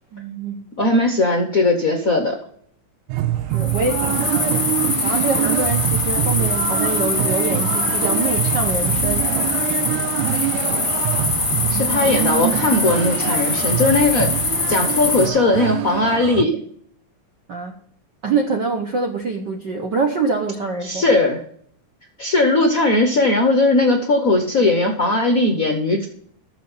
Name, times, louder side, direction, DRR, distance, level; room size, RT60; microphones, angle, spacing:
voice 1, 0.1-0.7 3.5-9.3 17.5-17.7 18.2-21.1, right 4 dB, 60° right, 3 dB, 1.1 m, -25 dB
voice 2, 0.8-2.4 11.7-16.6 20.8-21.4 22.2-26.1, left 2 dB, 65° left, 4 dB, 0.8 m, -18 dB
sound 1, 3.1-16.4, right 13 dB, 85° right, 2.1 m, -25 dB
sound 2, 3.5-15.3, left 3 dB, 30° left, 1.0 m, -23 dB
12.5 x 7.0 x 5.7 m, 0.62 s
omnidirectional pair, 3.4 m